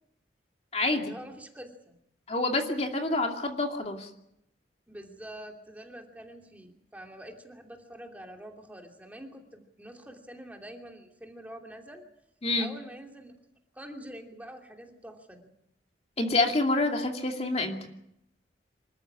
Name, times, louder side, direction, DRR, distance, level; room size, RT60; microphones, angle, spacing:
voice 1, 0.9-2.0 4.9-12.0 12.6-13.3 13.7-15.4, right 1 dB, 10° right, 2 dB, 2.8 m, -46 dB
voice 2, 2.3-4.1 12.4-12.7 16.2-17.8, left 2 dB, 35° left, 3 dB, 2.6 m, -27 dB
26.5 x 14.0 x 9.7 m, 0.78 s
head